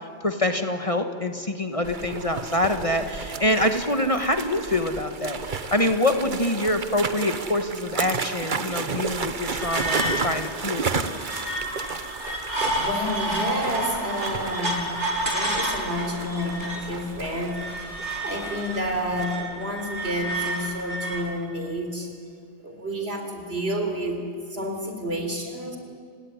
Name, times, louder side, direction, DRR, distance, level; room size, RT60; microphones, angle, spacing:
voice 1, 0.2-11.2, left 1 dB, 30° left, 6 dB, 1.5 m, -25 dB
sound 1, 1.8-19.2, right 5 dB, 45° right, 1.2 m, -33 dB
sound 2, 9.6-21.2, right 1 dB, 85° right, 4.1 m, -30 dB
voice 2, 12.8-15.0 15.3-17.6 18.2-22.1 22.6-25.8, equal, 60° right, 4 dB, 4.3 m, -30 dB
30.0 x 18.5 x 9.8 m, 2.3 s
omnidirectional pair, 1.2 m